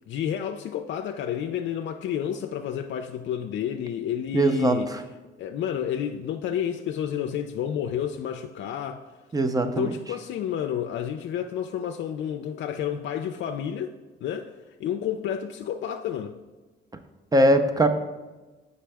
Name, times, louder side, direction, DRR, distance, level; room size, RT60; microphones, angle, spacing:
voice 1, 0.1-5.1 5.4-9.1 9.6-13.9 14.2-16.4, left 9 dB, 70° left, 5 dB, 0.4 m, -30 dB
voice 2, 4.3-4.8 9.3-9.9 17.3-17.9, right 1 dB, 20° right, 8 dB, 0.6 m, -20 dB
7.4 x 5.3 x 3.4 m, 1.2 s
cardioid pair, 90°, 20 cm